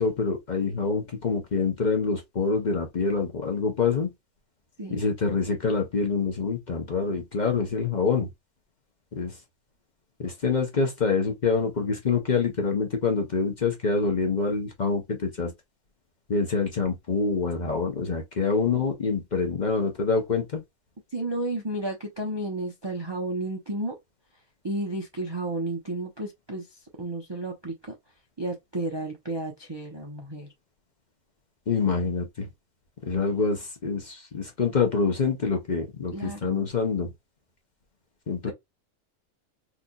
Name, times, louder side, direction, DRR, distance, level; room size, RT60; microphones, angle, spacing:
voice 1, 0.0-4.1 4.9-8.3 9.1-9.4 10.2-15.5 16.3-20.6 31.7-32.5 33.0-37.1 38.3-38.5, left 4 dB, 45° left, 0.6 m, -26 dB
voice 2, 21.1-24.0 24.6-27.9 28.4-30.5 36.1-36.7 38.4-38.5, right 2 dB, 35° right, 0.4 m, -32 dB
3.9 x 2.7 x 2.2 m
omnidirectional pair, 1.5 m